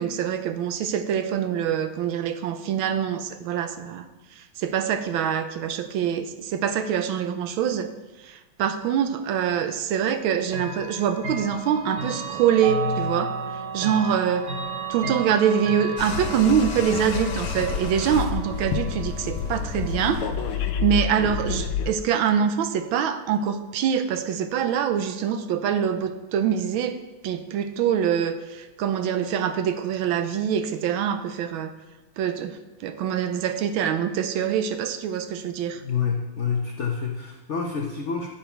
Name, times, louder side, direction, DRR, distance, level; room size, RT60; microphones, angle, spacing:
voice 1, 0.0-4.1 4.4-7.9 8.2-13.3 13.7-14.5 14.9-20.2 20.8-31.7 32.2-35.8, right 8 dB, 80° right, 9 dB, 1.4 m, -25 dB
Chime / Clock, 10.5-21.3, right 3 dB, 45° right, 1.1 m, -34 dB
sound 1, 16.0-21.9, left 6 dB, 85° left, 1.5 m, -29 dB
voice 2, 35.8-38.3, left 6 dB, 70° left, 1 dB, 0.6 m, -28 dB
9.2 x 7.0 x 4.4 m, 1.2 s
omnidirectional pair, 2.3 m